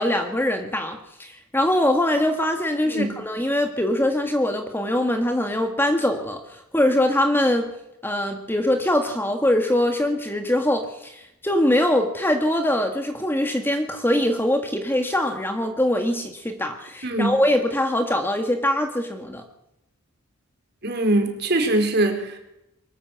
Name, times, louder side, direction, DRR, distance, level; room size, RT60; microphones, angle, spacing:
voice 1, 0.0-7.7 8.0-19.4, left 1 dB, 10° left, 5 dB, 1.7 m, -23 dB
voice 2, 17.0-17.4 20.8-22.4, right 1 dB, 50° right, 4 dB, 4.4 m, -22 dB
23.0 x 14.0 x 8.2 m, 0.83 s
head